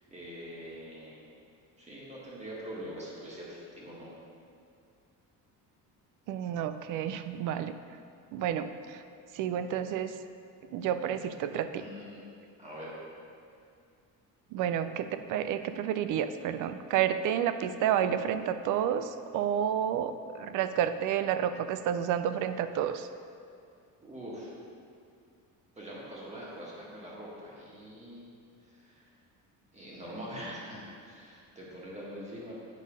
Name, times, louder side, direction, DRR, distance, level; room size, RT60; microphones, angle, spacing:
voice 1, 0.1-1.2 1.8-4.1 11.7-12.2 12.6-12.9 24.0-24.5 25.7-28.2 28.6-29.1 29.7-32.5, equal, 20° right, -6 dB, 1.6 m, -43 dB
voice 2, 6.3-7.8 8.3-9.0 9.3-10.2 10.7-11.8 14.5-23.1, right 9 dB, 60° right, 11 dB, 0.4 m, -30 dB
8.4 x 4.2 x 5.1 m, 2.3 s
cardioid pair, 155°, 36 cm